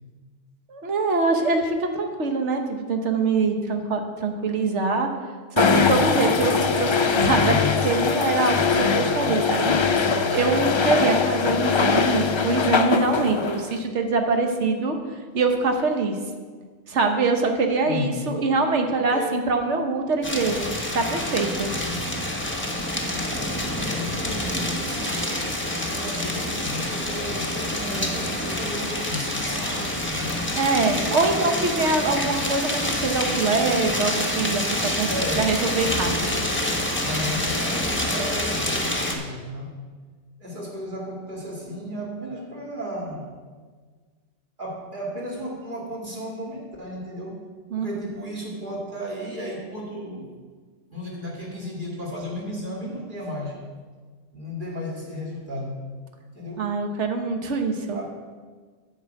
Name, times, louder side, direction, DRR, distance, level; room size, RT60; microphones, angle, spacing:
voice 1, 0.7-5.1 5.5-6.9 7.2-10.1 10.3-15.0 15.3-16.2 16.9-20.6 20.9-21.7 30.5-35.1 35.4-36.4 47.7-47.9 56.6-58.0, right 3 dB, 80° right, 5 dB, 1.4 m, -24 dB
sound 1, 5.6-13.8, left 5 dB, 45° left, 0.3 m, -22 dB
voice 2, 17.8-18.2 18.8-19.4 23.9-30.4 31.2-31.7 35.1-35.6 37.0-39.8 40.4-43.3 44.6-47.5 47.8-50.3 50.9-53.6 54.3-55.9 56.3-57.0 57.9-58.1, equal, 45° right, -3 dB, 2.5 m, -34 dB
sound 2, 20.2-39.2, left 1 dB, 10° left, 1.1 m, -27 dB
9.2 x 5.5 x 7.9 m, 1.5 s
omnidirectional pair, 1.2 m